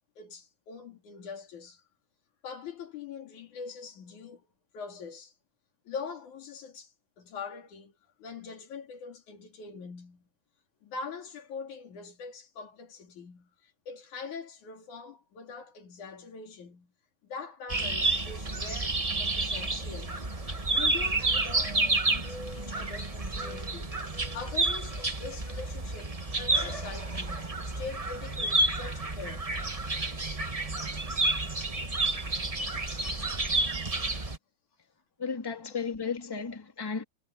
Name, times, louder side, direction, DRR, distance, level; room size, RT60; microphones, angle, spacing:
voice 1, 0.2-1.9 2.4-4.5 4.7-5.3 5.8-10.3 10.8-16.9 17.2-20.3 20.7-24.0 24.3-29.5, left 5 dB, 90° left, 4.4 m, -43 dB
sound 1, 17.7-34.4, right 2 dB, 30° right, 0.6 m, -30 dB
voice 2, 35.2-37.0, left 5 dB, 10° left, 2.0 m, -34 dB
omnidirectional pair, 3.3 m